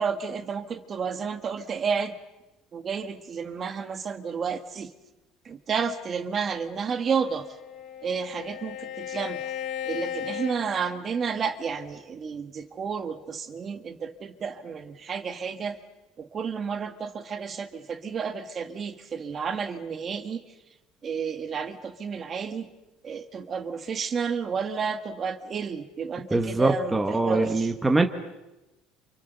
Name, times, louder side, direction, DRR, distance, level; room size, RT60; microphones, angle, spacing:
voice 1, 0.0-2.1 2.7-4.9 5.4-7.5 8.0-9.4 9.8-15.8 16.2-20.4 21.0-22.7 23.0-27.7, right 6 dB, 25° right, 9 dB, 1.5 m, -31 dB
Bowed string instrument, 7.0-11.5, left 10 dB, 55° left, 3.6 m, -36 dB
voice 2, 26.3-28.0, right 2 dB, 10° right, 5 dB, 1.3 m, -23 dB
29.0 x 28.0 x 6.8 m, 1.0 s
cardioid pair, 165°, 0 cm